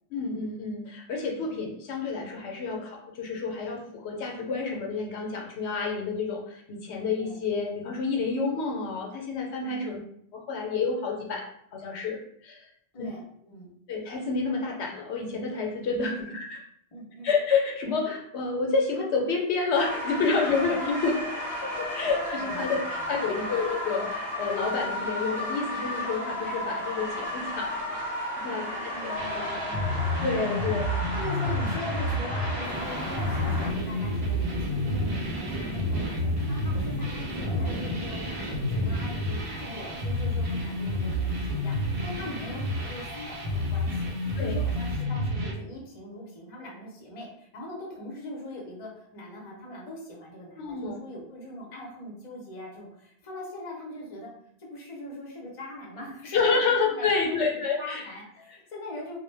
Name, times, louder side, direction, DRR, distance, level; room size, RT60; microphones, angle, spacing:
voice 1, 0.1-10.0 10.3-12.7 13.0-13.1 13.9-16.5 17.2-21.2 21.6-28.0 28.4-29.4 30.2-30.9 44.4-44.6 50.6-51.0 56.3-58.0, left 4 dB, 75° left, 1 dB, 0.8 m, -29 dB
voice 2, 9.7-10.0 12.9-13.7 16.1-16.4 16.9-17.3 22.3-23.5 28.5-29.9 30.6-30.7 31.1-54.3 54.6-59.2, left 1 dB, 40° left, -3 dB, 0.6 m, -41 dB
sound 1, 19.7-33.7, left 1 dB, 5° right, 0.9 m, -33 dB
sound 2, 29.2-45.5, left 1 dB, 70° right, 0.9 m, -30 dB
sound 3, 32.6-45.0, right 1 dB, 50° right, 0.5 m, -37 dB
2.1 x 2.1 x 3.1 m, 0.69 s
omnidirectional pair, 1.1 m